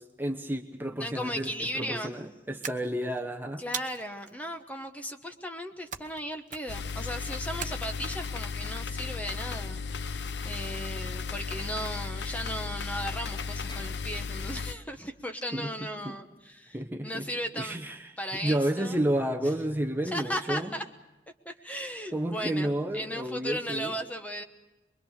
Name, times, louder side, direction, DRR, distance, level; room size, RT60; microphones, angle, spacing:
voice 1, 0.0-3.6 15.5-16.2 16.7-17.3 17.6-18.1 18.4-20.7 22.1-24.0, right 1 dB, 10° right, 4 dB, 1.0 m, -31 dB
voice 2, 0.9-2.1 3.6-16.8 17.0-17.8 18.2-19.0 20.0-20.8 21.4-24.4, equal, 10° left, 5 dB, 1.2 m, -36 dB
sound 1, 2.6-3.2 3.7-4.3 5.9-6.2 6.5-6.9 7.6-8.3, right 8 dB, 45° right, 1.1 m, -39 dB
sound 2, 6.7-14.7, left 5 dB, 70° left, 0.7 m, -35 dB
sound 3, 10.3-10.8 12.9-13.0 13.4-14.1 15.1-15.4, left 2 dB, 25° left, 1.4 m, -51 dB
24.0 x 22.5 x 6.6 m, 1.0 s
head